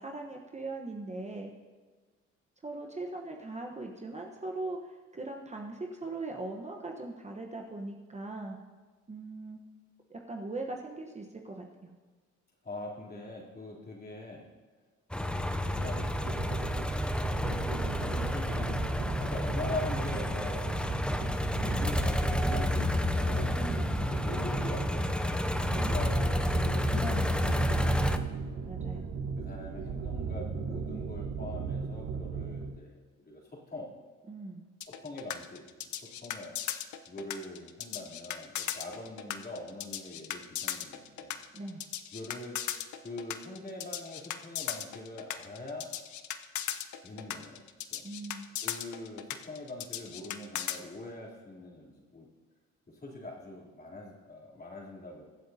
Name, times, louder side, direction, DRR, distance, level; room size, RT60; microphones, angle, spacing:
voice 1, 0.0-1.5 2.6-8.6 9.1-9.6 10.1-11.9 23.4-24.2 25.7-26.0 27.0-27.5 28.6-29.1 34.3-34.6 41.5-41.8 48.0-48.6, right 2 dB, 25° right, 1 dB, 1.1 m, -40 dB
voice 2, 12.6-14.5 15.1-18.8 19.2-20.7 21.6-25.5 25.9-28.7 29.4-33.9 34.9-35.7 36.0-36.5 37.1-41.4 42.1-42.6 43.0-45.9 47.0-48.0 48.6-52.3 52.9-55.3, left 2 dB, 30° left, -3 dB, 3.3 m, -43 dB
sound 1, 15.1-28.2, left 1 dB, 5° left, 0.6 m, -30 dB
sound 2, 15.3-32.8, right 5 dB, 65° right, 1.3 m, -37 dB
sound 3, 34.8-50.8, left 11 dB, 70° left, 0.7 m, -37 dB
23.0 x 7.8 x 2.8 m, 1.4 s
cardioid pair, 90°, 30 cm